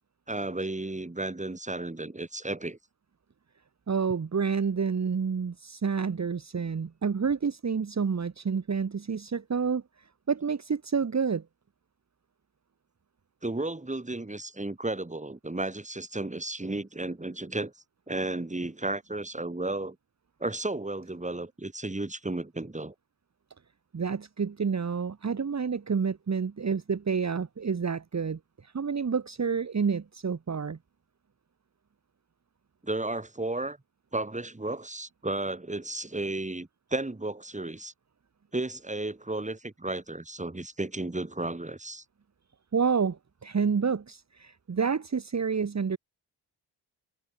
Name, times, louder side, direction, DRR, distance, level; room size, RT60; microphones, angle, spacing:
voice 1, 0.3-2.8 13.4-17.7 18.1-20.0 20.4-22.9 32.8-33.8 34.1-37.9 38.5-42.0, right 2 dB, 15° right, 4.0 m, -33 dB
voice 2, 3.9-11.4 23.9-30.8 42.7-46.0, right 6 dB, 40° right, 1.9 m, -29 dB
cardioid pair, 60°, 43 cm